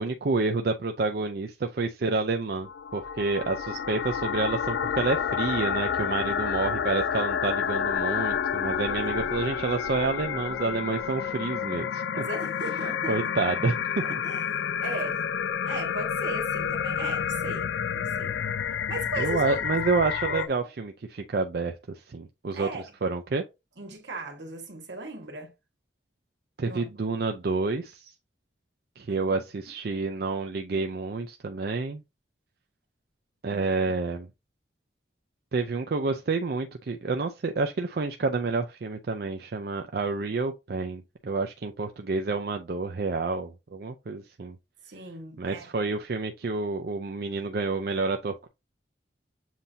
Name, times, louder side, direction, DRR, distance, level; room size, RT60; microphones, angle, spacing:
voice 1, 0.0-12.0 13.1-14.2 19.2-22.7 23.0-23.4 26.6-28.1 29.0-32.0 33.4-34.3 35.5-44.6 45.4-48.5, right 3 dB, 55° right, 0.4 m, -29 dB
sound 1, 2.6-20.5, left 7 dB, 75° left, 0.3 m, -29 dB
voice 2, 9.0-9.4 12.1-13.2 14.0-15.2 15.6-18.4 18.9-19.6 20.3-20.7 22.5-22.8 23.8-25.5 26.6-26.9 29.1-29.4 33.5-33.7 44.9-45.9, right 1 dB, 80° right, 1.6 m, -37 dB
7.3 x 2.7 x 2.7 m
head